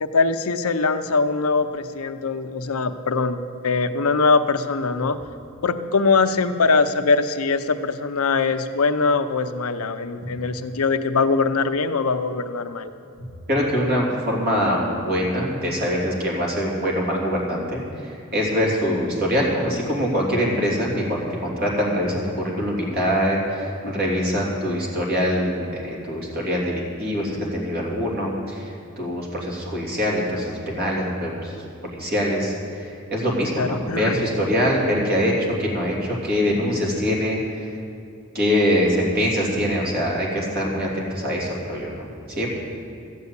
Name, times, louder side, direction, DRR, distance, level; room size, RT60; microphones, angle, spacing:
voice 1, 0.0-5.2 5.6-12.9 23.8-23.9 33.5-34.2, left 4 dB, 80° left, 9 dB, 0.7 m, -22 dB
voice 2, 13.5-37.4 38.3-42.1 42.4-42.5, equal, 45° right, -2 dB, 3.0 m, -24 dB
14.0 x 8.3 x 8.2 m, 2.6 s
head